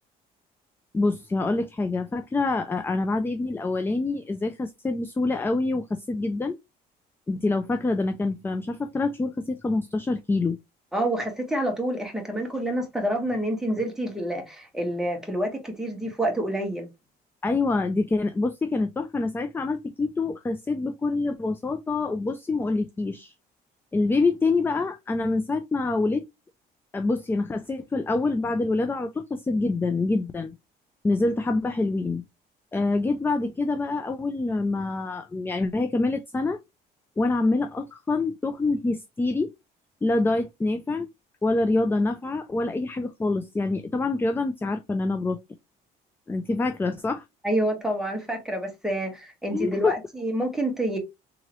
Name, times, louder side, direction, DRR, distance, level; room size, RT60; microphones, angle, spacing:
voice 1, 0.9-6.6 7.3-10.6 17.4-23.3 23.9-26.2 26.9-30.5 31.0-32.2 32.7-36.6 37.2-39.5 40.0-41.1 41.4-45.4 46.3-47.2 49.5-49.9, left 3 dB, 15° left, 0.3 m, -26 dB
voice 2, 10.9-16.9 47.4-51.0, right 1 dB, 5° right, 1.5 m, -28 dB
3.7 x 2.9 x 3.0 m
cardioid pair, 110°, 17 cm